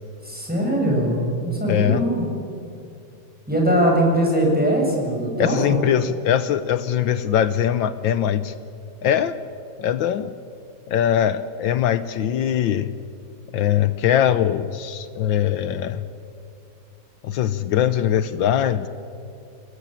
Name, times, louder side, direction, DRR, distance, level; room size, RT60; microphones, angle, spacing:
voice 1, 0.2-2.2 3.5-5.8, right 1 dB, 5° right, -1 dB, 6.8 m, -21 dB
voice 2, 1.7-2.0 5.4-8.5 9.0-9.3 9.8-10.3 10.9-12.9 13.5-16.0 17.2-18.9, left 10 dB, 75° left, 13 dB, 1.5 m, -21 dB
28.5 x 19.0 x 8.9 m, 2.5 s
omnidirectional pair, 2.2 m